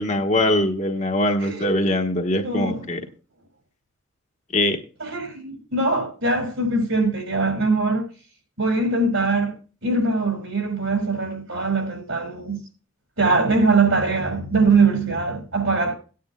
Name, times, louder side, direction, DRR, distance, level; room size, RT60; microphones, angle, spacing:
voice 1, 0.0-3.0 4.5-4.8, left 1 dB, 35° left, 1.1 m, -22 dB
voice 2, 2.4-2.8 5.0-8.0 8.6-9.5 9.8-12.6 13.2-16.0, right 3 dB, 70° right, 5.8 m, -22 dB
18.0 x 9.6 x 2.2 m
head